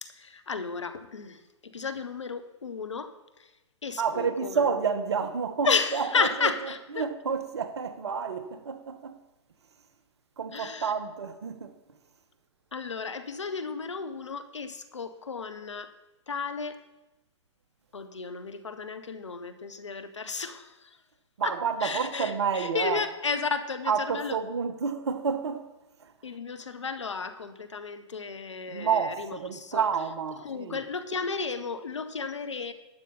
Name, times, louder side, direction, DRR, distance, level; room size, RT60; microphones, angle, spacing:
voice 1, 0.0-3.5 3.8-4.7 5.6-7.0 10.5-10.9 12.7-15.9 16.3-16.8 17.9-21.0 21.4-21.6 21.8-24.4 26.2-29.8 30.4-32.7, left 5 dB, 80° left, 1.2 m, -33 dB
voice 2, 4.0-6.5 6.9-9.2 10.4-11.7 21.4-23.1 23.9-25.7 26.0-26.1 28.7-30.8, right 6 dB, 65° right, 1.4 m, -29 dB
12.0 x 8.3 x 5.7 m
figure-of-eight pair, 120°, 15 cm